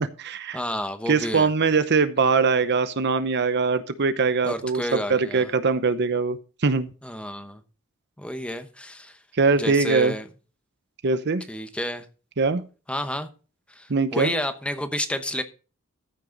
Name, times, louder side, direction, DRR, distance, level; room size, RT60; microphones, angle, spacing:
voice 1, 0.0-0.6 1.1-6.9 9.4-10.1 11.0-11.5 12.4-12.6 13.9-14.3, right 4 dB, 55° right, 0.7 m, -22 dB
voice 2, 0.5-1.5 4.4-5.5 7.0-7.6 8.2-9.2 9.5-10.2 11.5-12.1 12.9-13.3 13.7-15.4, equal, 5° left, 1.0 m, -30 dB
14.0 x 6.2 x 3.9 m
head